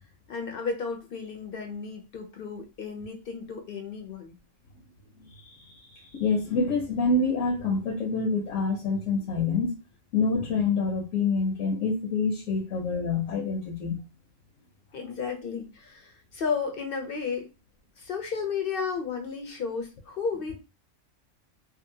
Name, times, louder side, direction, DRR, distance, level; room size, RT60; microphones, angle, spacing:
voice 1, 0.3-4.4 14.9-17.5 18.0-20.6, left 5 dB, 60° left, 5 dB, 0.6 m, -33 dB
voice 2, 5.2-9.7 10.1-14.0, left 4 dB, 80° left, 1 dB, 1.0 m, -27 dB
2.7 x 2.4 x 2.7 m, 0.28 s
omnidirectional pair, 1.3 m